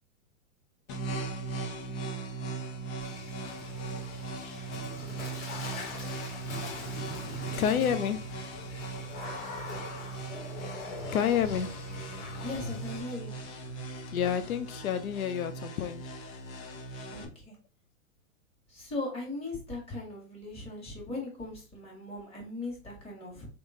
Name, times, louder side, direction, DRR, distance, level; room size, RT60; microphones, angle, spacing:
sound 1, 0.9-17.2, right 3 dB, 30° left, 0.8 m, -39 dB
Water / Splash splatter, 3.0-13.0, left 3 dB, 55° left, 1.7 m, -43 dB
voice 1, 7.6-8.3 11.1-11.8 14.1-16.1, left 8 dB, 85° left, 10 dB, 0.6 m, -29 dB
voice 2, 12.4-13.3 17.1-17.5 18.7-23.5, left 2 dB, 15° left, -3 dB, 1.8 m, -39 dB
3.7 x 3.0 x 3.7 m, 0.36 s
hypercardioid pair, 135°, 41 cm